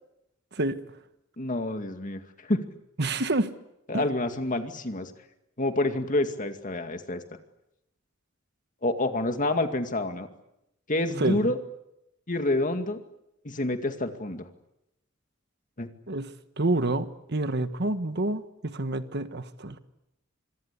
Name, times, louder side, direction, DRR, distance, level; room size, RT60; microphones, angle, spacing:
voice 1, 1.4-2.2 2.5-2.6 3.9-5.1 5.6-7.2 8.8-10.3 10.9-11.6 12.3-13.0 13.4-14.4 15.8-15.9, left 2 dB, 40° left, 7 dB, 2.3 m, -28 dB
voice 2, 3.0-3.5 3.9-4.0 11.2-11.4 16.1-16.3 16.6-19.8, right 2 dB, 55° right, 10 dB, 1.4 m, -28 dB
26.0 x 23.5 x 8.4 m, 0.85 s
head